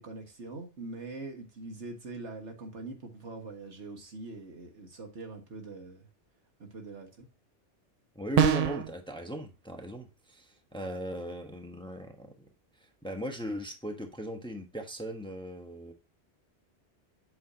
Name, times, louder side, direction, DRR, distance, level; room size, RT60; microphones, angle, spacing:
voice 1, 0.0-6.1 6.6-7.3, right 3 dB, 80° right, 2.0 m, -43 dB
voice 2, 8.1-12.3 12.8-15.9, equal, 5° left, 1.0 m, -38 dB
sound 1, 8.4-8.9, right 8 dB, 55° right, 0.4 m, -24 dB
8.4 x 6.1 x 2.8 m
omnidirectional pair, 1.2 m